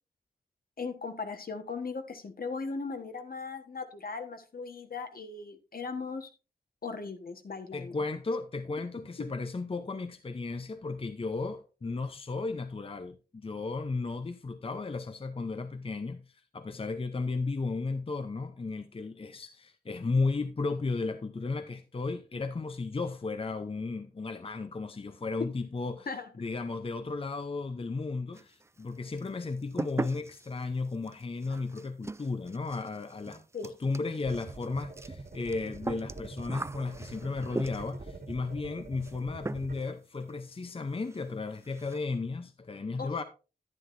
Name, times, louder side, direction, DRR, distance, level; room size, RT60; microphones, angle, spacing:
voice 1, 0.8-6.3 6.8-7.9 26.1-26.3 33.5-33.7 43.0-43.2, left 4 dB, 65° left, 1.3 m, -38 dB
voice 2, 7.7-16.2 16.5-26.1 26.4-43.2, left 3 dB, 35° left, 0.6 m, -34 dB
sound 1, 28.3-28.9 29.2-38.1 39.0-39.2 39.4-39.9 40.2-40.3 40.7-40.8 41.1-41.2 41.5-42.0, right 2 dB, 15° right, 0.3 m, -40 dB
sound 2, 34.2-39.8, right 3 dB, 70° right, 2.6 m, -44 dB
10.5 x 9.6 x 2.6 m
wide cardioid pair, 65°, 16 cm